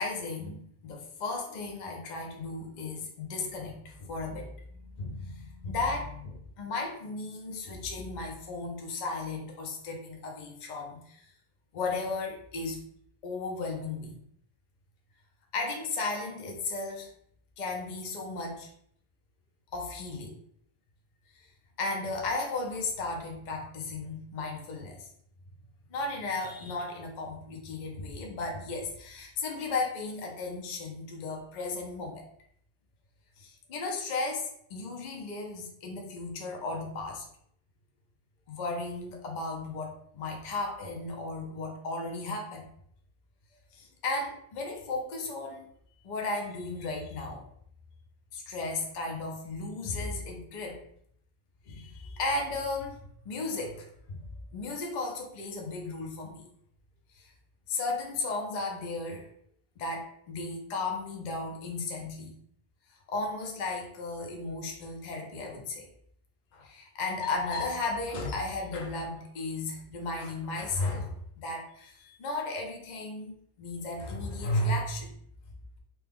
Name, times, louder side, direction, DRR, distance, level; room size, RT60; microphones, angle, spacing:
voice 1, 0.0-11.3 11.7-12.8 13.2-14.2 15.5-17.1 17.6-18.7 19.7-20.3 21.3-21.5 21.8-25.1 25.9-32.3 33.4-37.2 38.5-42.7 43.7-45.7 46.0-47.4 48.3-50.8 51.7-54.2 54.5-56.5 57.1-57.3 57.7-59.3 59.8-62.3 63.1-65.9 66.5-75.1, left 3 dB, 50° left, 1 dB, 0.6 m, -35 dB
3.0 x 2.2 x 3.4 m, 0.68 s
omnidirectional pair, 1.2 m